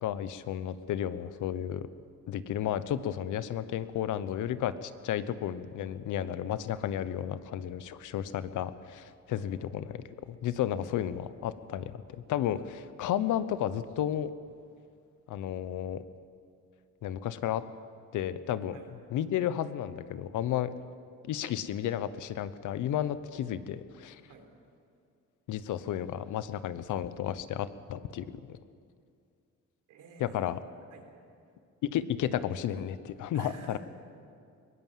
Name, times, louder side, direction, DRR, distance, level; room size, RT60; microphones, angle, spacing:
voice 1, 0.0-1.9 2.3-14.3 15.3-16.0 17.0-17.6 18.1-18.8 19.1-20.7 21.3-24.2 25.5-28.6 30.2-30.6 31.8-33.8, left 10 dB, 80° left, 14 dB, 1.0 m, -33 dB
voice 2, 29.9-30.5 30.9-31.0 33.3-33.8, right 6 dB, 90° right, 2 dB, 3.9 m, -50 dB
22.0 x 19.0 x 7.5 m, 2.4 s
cardioid pair, 90°, 30 cm